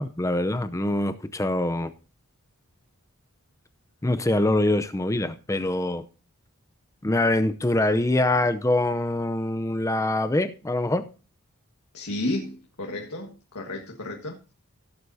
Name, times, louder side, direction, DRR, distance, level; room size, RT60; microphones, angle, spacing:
voice 1, 0.0-1.9 4.0-6.1 7.0-11.0, left 1 dB, 15° left, 0.6 m, -24 dB
voice 2, 11.9-14.4, left 1 dB, 85° left, 1.7 m, -32 dB
16.5 x 8.0 x 2.7 m
head